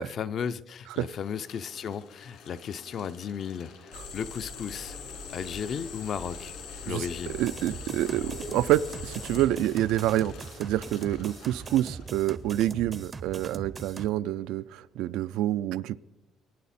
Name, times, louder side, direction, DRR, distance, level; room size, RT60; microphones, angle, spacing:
voice 1, 0.0-5.0 5.3-6.5 6.9-7.4, left 7 dB, 40° left, 0.4 m, -35 dB
sound 1, 0.8-12.4, left 5 dB, 70° left, 2.7 m, -50 dB
sound 2, 3.9-9.5, left 4 dB, 90° left, 3.6 m, -42 dB
voice 2, 7.3-10.3 10.6-16.0, right 13 dB, 80° right, 0.4 m, -27 dB
sound 3, 7.4-14.1, right 4 dB, 20° right, 0.5 m, -41 dB
22.5 x 9.4 x 4.2 m
cardioid pair, 175°, 0 cm